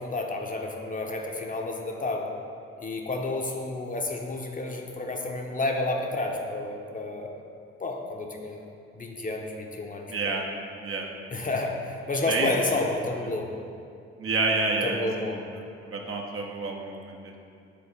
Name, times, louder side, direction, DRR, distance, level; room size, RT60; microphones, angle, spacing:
voice 1, 0.0-2.3 2.8-7.4 7.8-8.6 8.9-10.4 11.3-13.5 14.8-15.4, left 2 dB, 25° left, 1 dB, 0.9 m, -30 dB
voice 2, 10.1-10.4 10.8-11.1 12.3-12.5 14.2-15.3 15.8-17.3, right 3 dB, 45° right, 1 dB, 1.0 m, -28 dB
6.9 x 4.4 x 5.1 m, 2.4 s
figure-of-eight pair, 40°, 31 cm